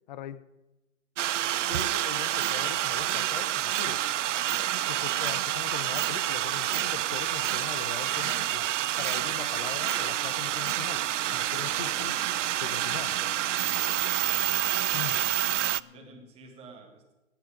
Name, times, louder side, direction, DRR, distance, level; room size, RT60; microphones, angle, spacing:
voice 1, 0.1-0.4 1.7-4.1 4.9-8.7 9.0-11.1 11.3-12.2 12.6-13.2 14.9-15.2, left 11 dB, 35° left, 0.6 m, -41 dB
sound 1, 1.2-15.8, right 12 dB, 70° right, 0.5 m, -28 dB
sound 2, 7.8-16.3, left 6 dB, 85° left, 2.0 m, -56 dB
voice 2, 15.9-17.1, right 3 dB, 15° right, 1.9 m, -51 dB
15.0 x 10.0 x 5.1 m
hypercardioid pair, 150°, 38 cm